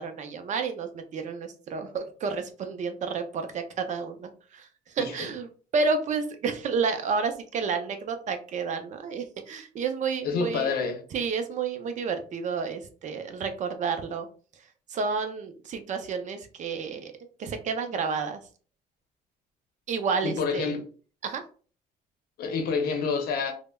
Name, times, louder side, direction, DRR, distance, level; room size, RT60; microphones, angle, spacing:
voice 1, 0.0-4.7 4.9-5.5 5.7-10.7 11.1-14.3 14.9-17.1 17.4-18.4 19.9-20.7 21.2-21.4, right 5 dB, 45° right, 0.5 m, -30 dB
voice 2, 10.2-11.0 20.2-20.8 22.4-23.5, left 5 dB, 65° left, 0.7 m, -28 dB
3.2 x 2.0 x 2.2 m
cardioid pair, 110°, 17 cm